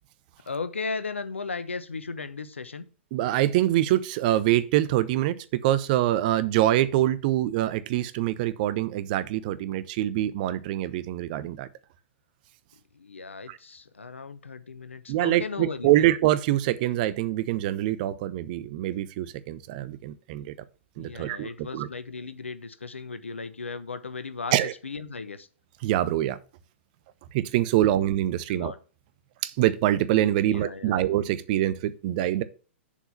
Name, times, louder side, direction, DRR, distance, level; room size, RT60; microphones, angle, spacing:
voice 1, 0.5-2.9 12.9-16.1 21.0-24.5 24.8-25.5 28.5-28.8 30.4-31.0, left 4 dB, 75° left, 0.9 m, -36 dB
voice 2, 3.1-11.7 13.5-13.6 15.1-20.5 21.0-21.9 24.5-24.7 25.8-26.4 27.3-28.7 29.4-32.4, right 13 dB, 45° right, 0.8 m, -25 dB
7.0 x 4.7 x 5.7 m
figure-of-eight pair, 105°, 7 cm